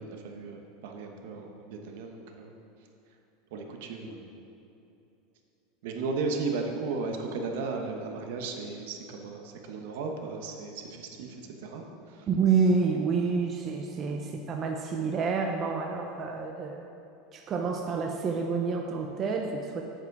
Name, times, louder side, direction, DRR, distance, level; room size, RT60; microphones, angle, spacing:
voice 1, 0.0-2.5 3.5-4.3 5.8-12.3, right 4 dB, 70° right, 3 dB, 1.1 m, -35 dB
voice 2, 12.3-16.9 17.3-19.8, right 5 dB, 25° right, 2 dB, 0.5 m, -28 dB
8.1 x 7.3 x 4.8 m, 2.8 s
supercardioid pair, 160°, 0 cm